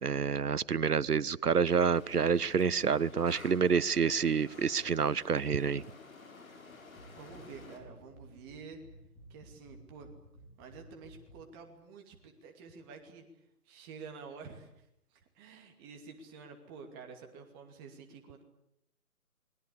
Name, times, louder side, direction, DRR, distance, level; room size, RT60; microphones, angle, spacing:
voice 1, 0.0-5.8, right 6 dB, 85° right, 21 dB, 1.0 m, -28 dB
sound 1, 1.6-7.8, left 3 dB, 60° left, 6.8 m, -52 dB
sound 2, 7.0-11.5, right 1 dB, 10° left, 5.3 m, -55 dB
voice 2, 7.2-8.8 9.3-10.1 10.6-13.2 13.6-14.9 15.1-18.4, right 5 dB, 15° right, 4 dB, 2.4 m, -49 dB
28.0 x 22.0 x 8.4 m, 0.77 s
figure-of-eight pair, 155°, 45 cm